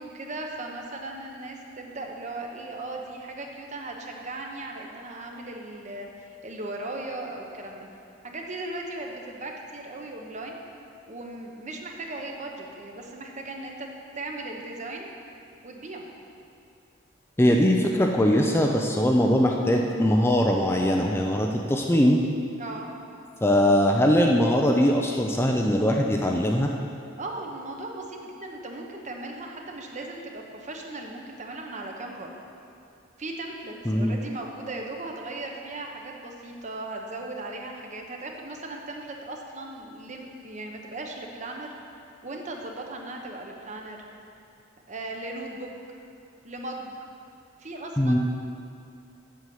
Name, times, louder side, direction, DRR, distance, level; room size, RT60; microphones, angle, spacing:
voice 1, 0.0-7.9 8.2-10.6 11.1-13.9 14.1-15.1 15.6-16.1 22.6-22.9 27.2-32.3 33.2-41.7 42.2-44.0 44.9-45.7 46.4-47.0 47.6-48.2, right 2 dB, 35° right, 1 dB, 1.0 m, -37 dB
voice 2, 17.4-22.2 23.4-26.7 33.9-34.2 48.0-48.2, equal, 10° left, 1 dB, 0.5 m, -21 dB
8.1 x 6.9 x 7.7 m, 2.5 s
head